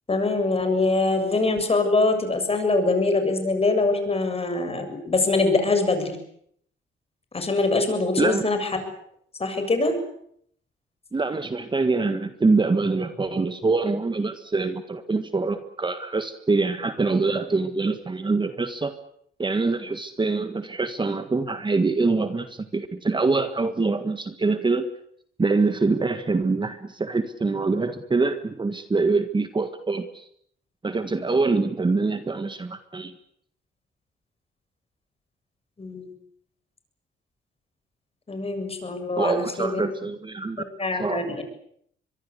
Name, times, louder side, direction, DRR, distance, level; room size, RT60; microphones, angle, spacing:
voice 1, 0.1-6.2 7.3-8.8 9.4-10.0 35.8-36.1 38.3-39.8 40.8-41.4, left 3 dB, 30° left, 7 dB, 7.4 m, -23 dB
voice 2, 11.1-19.0 19.4-24.9 25.4-30.3 30.8-33.1 39.2-40.6 41.0-41.3, right 3 dB, 25° right, 10 dB, 1.7 m, -24 dB
24.0 x 22.5 x 8.3 m, 0.68 s
cardioid pair, 90°, 20 cm